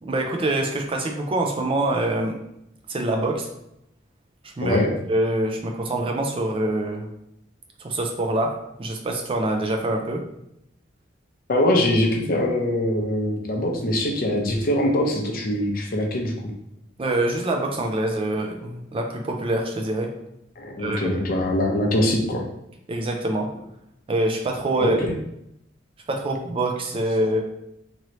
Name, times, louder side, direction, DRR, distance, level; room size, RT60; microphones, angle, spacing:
voice 1, 0.0-2.4 2.9-3.5 4.4-4.8 5.1-7.1 7.8-8.5 8.8-10.2 17.0-20.1 20.8-21.3 22.9-23.5 24.1-25.0 26.1-27.4, right 1 dB, 30° right, 2 dB, 0.4 m, -25 dB
voice 2, 4.6-4.9 11.5-16.4 20.6-22.4 24.7-25.1, left 1 dB, 50° left, 1 dB, 0.6 m, -23 dB
3.0 x 2.6 x 2.9 m, 0.81 s
head